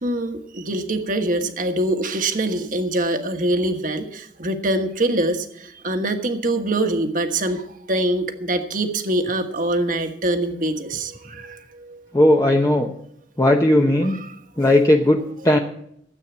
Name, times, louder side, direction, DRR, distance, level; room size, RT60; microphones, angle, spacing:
voice 1, 0.0-12.0 14.0-14.4, right 1 dB, 50° right, 6 dB, 1.4 m, -24 dB
voice 2, 12.1-12.9 13.4-14.2 14.6-15.6, left 1 dB, 20° left, 2 dB, 0.8 m, -17 dB
13.5 x 8.3 x 7.1 m, 0.72 s
head